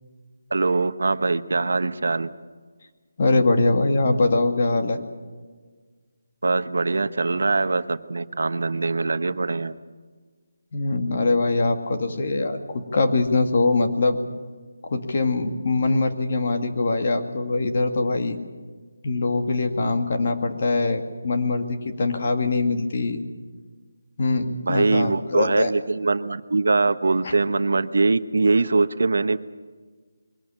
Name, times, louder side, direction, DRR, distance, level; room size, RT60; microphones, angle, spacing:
voice 1, 0.5-2.3 6.4-9.8 24.7-29.4, right 3 dB, 65° right, 12 dB, 1.0 m, -22 dB
voice 2, 3.2-5.0 10.7-14.2 14.8-18.4 19.0-23.2 24.2-25.7 27.2-27.3, left 3 dB, 40° left, 5 dB, 2.1 m, -23 dB
22.5 x 18.0 x 8.9 m, 1.5 s
figure-of-eight pair, 175°, 0 cm